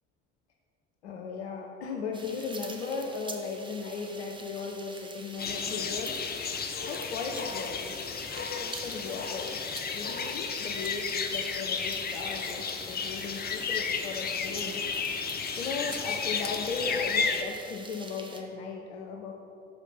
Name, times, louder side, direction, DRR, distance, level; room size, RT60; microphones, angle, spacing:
voice 1, 1.0-6.1 6.9-8.1 8.5-9.6 9.9-14.8 15.6-19.3, left 4 dB, 80° left, 1 dB, 0.6 m, -37 dB
sound 1, 2.1-18.4, right 2 dB, 15° right, 0.8 m, -46 dB
sound 2, 5.4-17.4, left 5 dB, 30° left, 0.6 m, -33 dB
5.7 x 4.9 x 5.7 m, 2.6 s
figure-of-eight pair, 50°, 33 cm